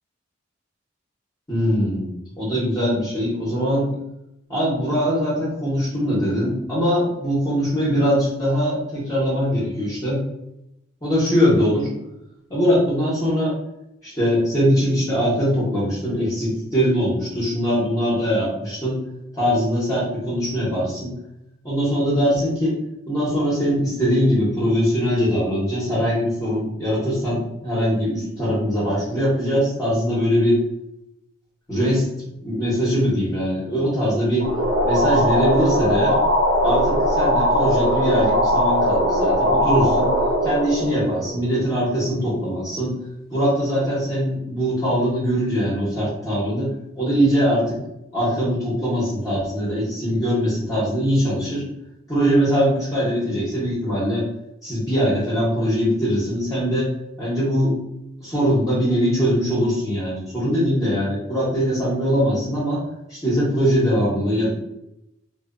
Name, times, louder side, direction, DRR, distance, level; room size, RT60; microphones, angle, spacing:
voice 1, 1.5-2.1 2.4-3.9 4.5-10.2 11.0-11.9 12.5-13.5 14.0-19.0 19.3-21.1 21.6-22.7 23.1-30.6 31.7-32.0 32.4-34.5 34.8-36.1 36.6-40.1 40.4-42.9 43.3-47.8 48.1-51.6 52.1-54.2 54.6-56.9 57.2-57.7 58.2-62.8 63.1-64.5, equal, 15° left, -9 dB, 0.8 m, -21 dB
sound 1, 34.4-41.8, equal, 65° right, 0.9 m, -20 dB
2.7 x 2.0 x 2.4 m, 0.84 s
head